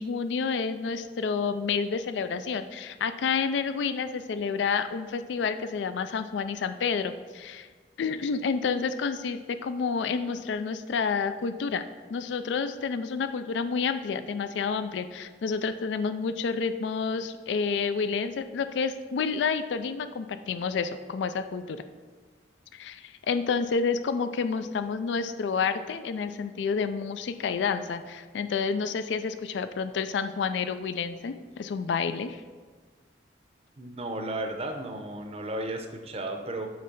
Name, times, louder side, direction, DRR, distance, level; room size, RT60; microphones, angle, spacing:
voice 1, 0.0-7.7 8.0-11.8 12.1-21.8 22.7-32.4, left 5 dB, 75° left, 11 dB, 0.4 m, -29 dB
voice 2, 33.8-36.7, right 1 dB, 35° right, 5 dB, 0.6 m, -34 dB
8.0 x 3.2 x 5.3 m, 1.4 s
head